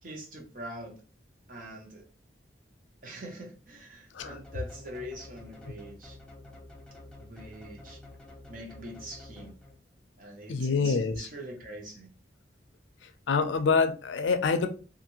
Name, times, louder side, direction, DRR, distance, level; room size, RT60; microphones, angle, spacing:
voice 1, 0.0-1.0 1.5-2.0 3.0-6.2 7.2-8.0 8.5-9.5 10.2-12.1, right 1 dB, 45° right, 0.7 m, -43 dB
sound 1, 4.2-10.0, left 2 dB, 5° left, 0.5 m, -49 dB
voice 2, 10.5-11.3 13.0-14.7, left 4 dB, 85° left, 0.4 m, -26 dB
2.6 x 2.5 x 2.8 m
head